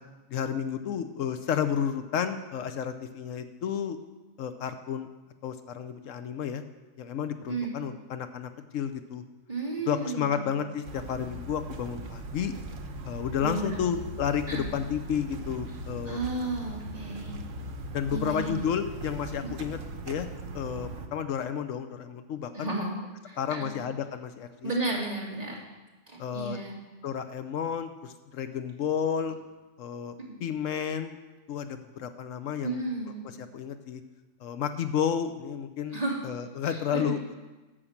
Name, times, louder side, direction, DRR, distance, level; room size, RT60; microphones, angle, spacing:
voice 1, 0.3-4.0 4.4-5.1 5.4-6.6 7.0-9.2 9.9-12.5 13.0-16.2 17.9-19.8 20.1-20.3 20.5-22.7 23.4-24.7 26.2-26.6 27.0-29.4 29.8-31.2 31.5-32.8 33.4-34.0 34.4-37.2, left 8 dB, 80° left, 9 dB, 1.1 m, -31 dB
voice 2, 9.5-10.4 13.4-13.9 14.5-14.7 16.1-17.4 18.1-18.7 19.4-19.5 22.5-22.9 23.3-23.7 24.6-25.6 26.1-26.8 32.6-33.2 35.9-36.2 36.6-37.1, right 3 dB, 30° right, -3 dB, 2.3 m, -33 dB
sound 1, 10.8-21.1, right 1 dB, 80° right, 1.3 m, -39 dB
10.0 x 6.4 x 7.2 m, 1.1 s
omnidirectional pair, 1.3 m